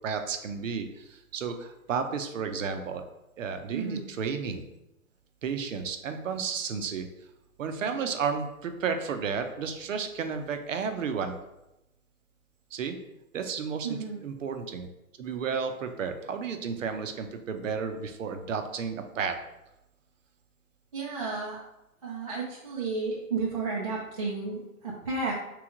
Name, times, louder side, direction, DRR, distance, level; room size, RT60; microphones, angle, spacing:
voice 1, 0.0-3.0 3.4-4.6 5.4-7.1 7.6-11.4 12.7-13.0 13.3-13.9 14.2-14.9 15.2-19.4, right 6 dB, 65° right, 7 dB, 0.7 m, -32 dB
voice 2, 3.7-4.1 13.8-14.2 20.9-21.6 22.0-25.3, right 4 dB, 25° right, -5 dB, 0.4 m, -32 dB
3.3 x 3.1 x 4.8 m, 0.92 s
hypercardioid pair, 145°, 42 cm